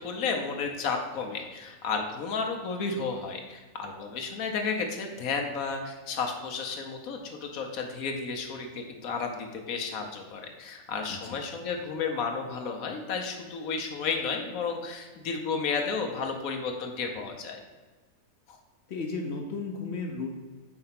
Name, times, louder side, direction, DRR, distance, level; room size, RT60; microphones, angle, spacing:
voice 1, 0.0-17.6 18.5-18.6, left 5 dB, 85° left, 3 dB, 1.2 m, -32 dB
voice 2, 11.1-11.4 18.9-20.4, left 3 dB, 60° left, 2 dB, 0.8 m, -34 dB
4.7 x 4.4 x 5.7 m, 1.3 s
omnidirectional pair, 1.5 m